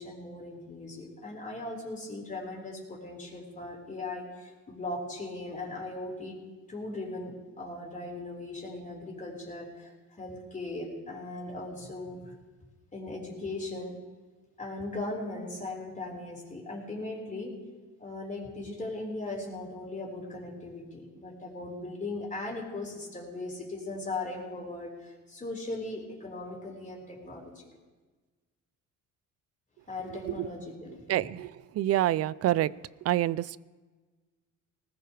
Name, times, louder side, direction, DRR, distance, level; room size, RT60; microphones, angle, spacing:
voice 1, 0.0-6.4 6.7-12.3 12.9-14.0 14.6-17.6 18.0-27.6 29.9-31.3, left 2 dB, 25° left, -1 dB, 4.6 m, -38 dB
voice 2, 31.1-32.7 33.0-33.6, right 14 dB, 50° right, 20 dB, 0.4 m, -27 dB
19.5 x 19.5 x 3.4 m, 1.3 s
cardioid pair, 120°, 33 cm